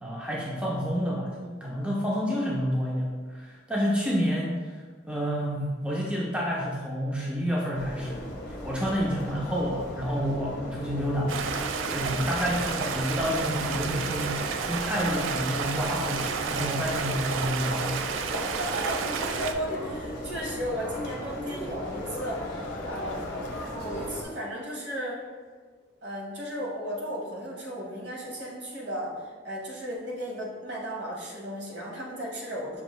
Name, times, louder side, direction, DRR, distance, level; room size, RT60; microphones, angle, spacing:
voice 1, 0.0-11.6 11.9-18.0, equal, 5° right, -5 dB, 0.4 m, -29 dB
sound 1, 7.7-24.2, equal, 50° left, 0.7 m, -37 dB
Stream, 11.3-19.5, right 6 dB, 80° right, 0.3 m, -31 dB
voice 2, 18.4-23.2 23.8-25.2 26.0-32.8, equal, 60° right, -3 dB, 1.0 m, -35 dB
sound 2, 20.9-25.4, left 3 dB, 90° left, 0.4 m, -44 dB
5.3 x 2.5 x 3.0 m, 1.5 s
head